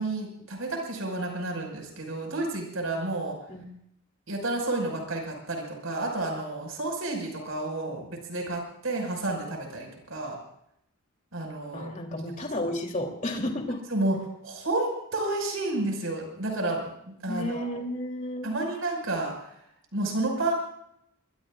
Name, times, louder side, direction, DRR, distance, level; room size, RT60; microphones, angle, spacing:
voice 1, 0.0-3.3 4.3-10.4 11.3-11.9 12.4-12.5 13.9-14.2 14.4-17.8 18.4-19.5 19.9-20.5, right 2 dB, 75° right, 2 dB, 5.7 m, -31 dB
voice 2, 11.7-13.8 17.2-18.5, left 1 dB, 35° left, 1 dB, 3.3 m, -32 dB
25.0 x 22.0 x 2.5 m, 0.75 s
head